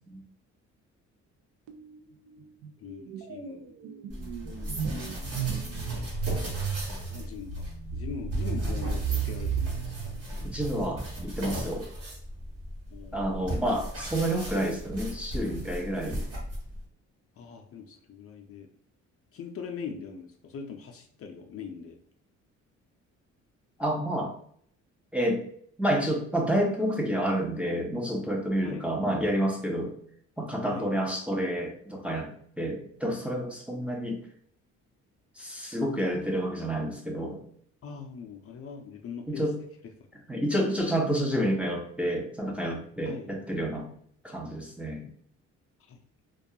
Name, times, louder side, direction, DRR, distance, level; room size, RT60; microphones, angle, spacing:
sound 1, 1.7-2.0 2.3-11.0, right 8 dB, 90° right, 0.5 m, -34 dB
voice 1, 2.8-3.6 4.5-6.0 6.9-10.2 12.9-13.4 17.4-18.7 19.3-22.0 28.6-28.9 30.7-30.9 37.8-39.4 40.4-40.5 43.1-43.3 45.9-46.0, left 6 dB, 50° left, 3 dB, 0.4 m, -42 dB
sound 2, 4.1-16.8, equal, 50° right, 1.1 m, -36 dB
voice 2, 10.4-11.9 13.1-16.2 23.8-24.3 25.1-25.4 25.8-29.9 30.4-34.2 35.4-37.4 39.3-39.5 40.3-43.9 44.2-45.1, equal, 5° right, -1 dB, 0.5 m, -29 dB
2.3 x 2.2 x 2.7 m, 0.63 s
cardioid pair, 90°, 30 cm